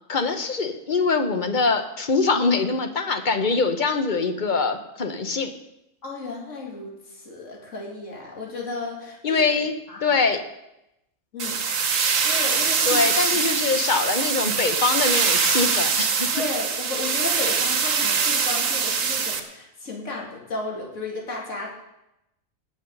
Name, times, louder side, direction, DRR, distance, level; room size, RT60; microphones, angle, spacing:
voice 1, 0.1-5.5 9.2-9.7 10.0-10.4 12.9-16.3, left 4 dB, 40° left, 7 dB, 1.0 m, -23 dB
voice 2, 6.0-9.4 9.9-10.2 11.3-11.6 12.2-13.4 16.3-21.7, left 3 dB, 65° left, -2 dB, 2.7 m, -34 dB
sound 1, 11.4-19.4, right 6 dB, 70° right, 1.4 m, -23 dB
18.5 x 6.4 x 5.4 m, 0.87 s
omnidirectional pair, 1.4 m